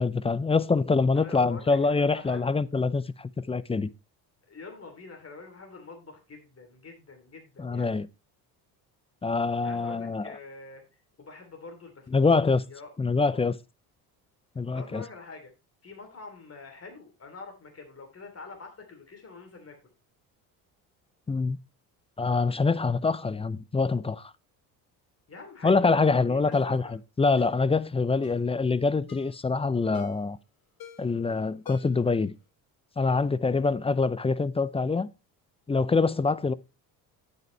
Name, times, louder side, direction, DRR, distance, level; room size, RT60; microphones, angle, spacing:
voice 1, 0.0-3.9 7.6-8.1 9.2-10.2 12.1-12.6 13.0-13.6 14.6-15.0 21.3-21.6 22.2-24.3 25.6-26.8 27.2-30.4 31.0-32.4 33.0-35.1 35.7-36.5, left 4 dB, 15° left, 0.4 m, -25 dB
voice 2, 1.1-2.6 4.5-7.9 9.6-13.4 14.7-15.5 15.8-19.8 25.3-26.9, left 3 dB, 30° left, 3.1 m, -46 dB
Ringtone, 25.7-25.9 26.5-26.7 27.4-27.6 28.2-28.5 29.1-29.4 29.9-30.3 30.8-31.2 31.7-32.1 32.4-32.5, left 9 dB, 50° left, 1.7 m, -48 dB
9.0 x 8.4 x 3.2 m
supercardioid pair, 65°, 46 cm